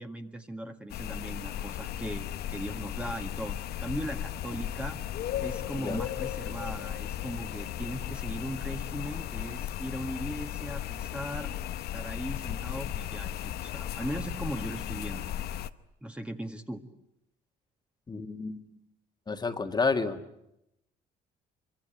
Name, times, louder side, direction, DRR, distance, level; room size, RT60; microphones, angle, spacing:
voice 1, 0.0-5.0 5.4-11.5 11.9-15.3 16.0-16.8, right 1 dB, 5° right, 5 dB, 1.8 m, -38 dB
sound 1, 0.9-15.7, left 11 dB, 70° left, 1.0 m, -36 dB
voice 2, 18.1-18.6 19.3-20.2, left 4 dB, 25° left, 6 dB, 1.8 m, -30 dB
25.5 x 24.0 x 9.1 m, 0.83 s
cardioid pair, 110°, 17 cm